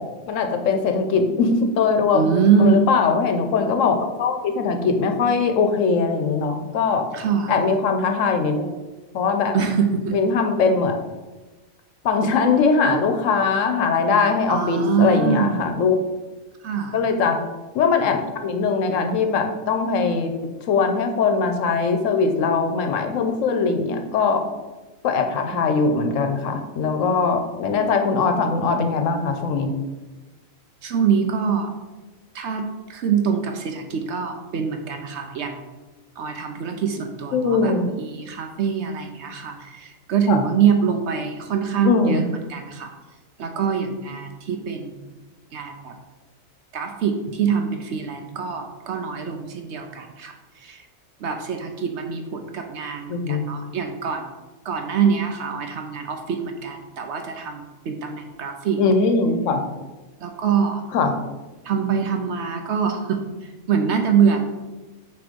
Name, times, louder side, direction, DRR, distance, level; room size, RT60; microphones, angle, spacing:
voice 1, 0.3-2.2 2.6-7.0 7.5-8.7 9.1-9.5 10.1-11.0 12.0-16.0 16.9-17.4 17.7-20.3 20.7-24.4 25.0-29.7 37.3-37.9 40.3-40.4 41.8-42.2 53.1-53.4 58.8-59.6 60.9-61.1, left 4 dB, 70° left, 5 dB, 1.0 m, -21 dB
voice 2, 2.1-2.9 7.1-7.5 9.5-10.2 14.5-15.7 16.6-17.0 25.5-25.7 30.8-31.7 32.3-35.6 36.2-42.9 43.4-45.0 45.5-45.9 46.7-50.8 51.2-54.3 54.6-58.8 60.2-60.8 61.6-64.5, right 6 dB, 65° right, 5 dB, 0.8 m, -24 dB
6.2 x 3.0 x 5.1 m, 1.2 s
omnidirectional pair, 1.4 m